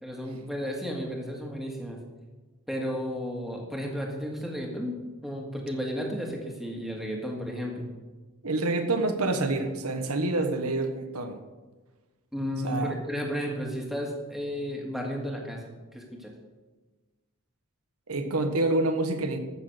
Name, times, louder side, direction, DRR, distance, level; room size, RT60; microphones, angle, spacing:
voice 1, 0.0-2.0 2.7-5.0 5.2-7.9 12.3-16.3, equal, ahead, -1 dB, 1.8 m, -33 dB
voice 2, 8.4-11.4 12.6-13.0 18.1-19.4, right 2 dB, 80° right, 6 dB, 1.2 m, -27 dB
14.0 x 6.4 x 6.7 m, 1.2 s
head